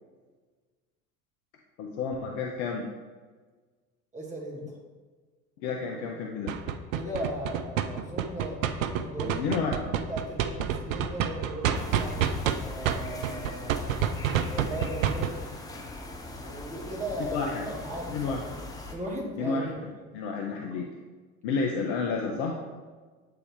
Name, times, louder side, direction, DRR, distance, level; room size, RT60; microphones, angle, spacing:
voice 1, 1.8-2.9 5.6-6.5 9.2-9.9 17.3-17.7 18.1-18.4 19.4-19.7 20.1-20.9 21.4-22.5, left 4 dB, 45° left, 1 dB, 0.7 m, -30 dB
voice 2, 4.1-4.8 6.9-8.6 8.9-9.5 9.9-14.0 14.4-15.6 16.4-18.4 18.9-19.8, right 1 dB, 15° right, -3 dB, 1.6 m, -37 dB
sound 1, 6.5-12.6 12.9-15.3, right 9 dB, 65° right, 0.5 m, -27 dB
sound 2, 11.7-19.0, left 1 dB, 10° left, 0.6 m, -41 dB
8.1 x 3.5 x 3.5 m, 1.4 s
figure-of-eight pair, 70°, 43 cm